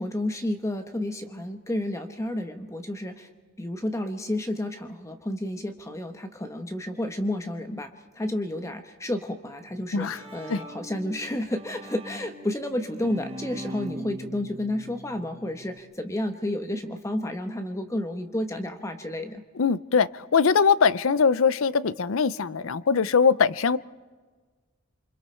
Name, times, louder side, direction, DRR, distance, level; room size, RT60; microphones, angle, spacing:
voice 1, 0.0-3.3 3.6-7.9 8.1-19.4, left 1 dB, 15° left, 6 dB, 1.0 m, -31 dB
Bowed string instrument, 9.7-15.8, equal, 30° right, 1.5 m, -41 dB
voice 2, 19.5-23.8, left 5 dB, 80° left, 18 dB, 0.6 m, -22 dB
28.5 x 25.5 x 4.4 m, 1.4 s
head